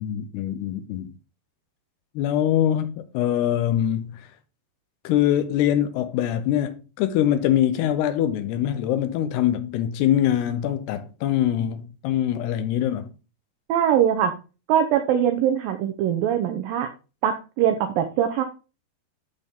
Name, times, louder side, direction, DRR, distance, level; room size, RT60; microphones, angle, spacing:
voice 1, 0.0-1.1 2.2-4.3 5.0-13.1, left 11 dB, 80° left, 2.6 m, -23 dB
voice 2, 13.7-14.3 14.7-16.9 17.2-18.4, right 9 dB, 85° right, 2.0 m, -22 dB
12.0 x 4.4 x 3.6 m
omnidirectional pair, 5.0 m